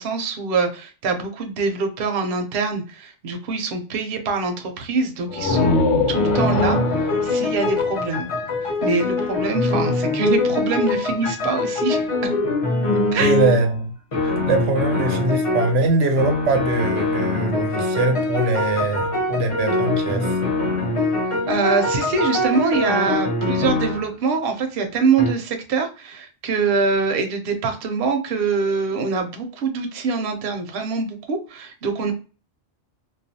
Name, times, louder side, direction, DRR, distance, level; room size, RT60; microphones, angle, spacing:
voice 1, 0.0-5.7 6.1-8.3 8.6-12.1 13.1-13.4 21.5-32.1, right 4 dB, 60° right, 0.7 m, -24 dB
sound 1, 5.3-8.9, left 3 dB, 85° left, 0.9 m, -24 dB
sound 2, 5.5-5.8 6.1-13.7 14.1-15.8 16.2-24.1 25.2-25.3, left 2 dB, 40° left, 0.5 m, -23 dB
voice 2, 13.2-13.9 14.2-20.4, right 2 dB, 85° right, 0.9 m, -22 dB
2.3 x 2.2 x 2.6 m
omnidirectional pair, 1.2 m